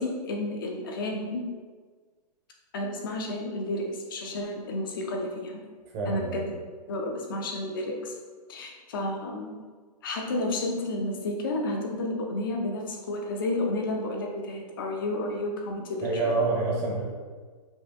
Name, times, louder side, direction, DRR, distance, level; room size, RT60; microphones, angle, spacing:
voice 1, 0.0-1.4 2.7-5.6 6.1-6.4 6.9-8.2 8.5-9.5 10.0-16.3, left 1 dB, 30° left, 1 dB, 0.5 m, -31 dB
voice 2, 5.9-6.5 16.0-17.0, right 3 dB, 15° right, -3 dB, 0.7 m, -27 dB
5.4 x 2.6 x 3.4 m, 1.5 s
hypercardioid pair, 170°, 21 cm